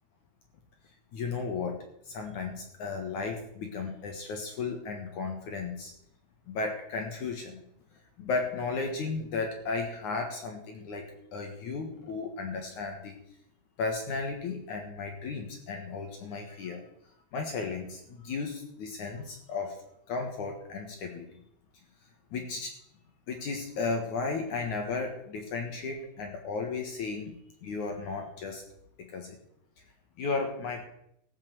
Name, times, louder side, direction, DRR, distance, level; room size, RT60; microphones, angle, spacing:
voice 1, 1.1-5.9 6.5-7.6 8.2-13.2 13.8-16.8 17.3-19.8 20.1-21.4 22.3-22.8 23.3-27.4 27.6-28.6 29.0-29.4 30.2-30.9, left 4 dB, 60° left, 3 dB, 2.4 m, -34 dB
15.0 x 7.5 x 7.6 m, 0.74 s
omnidirectional pair, 4.9 m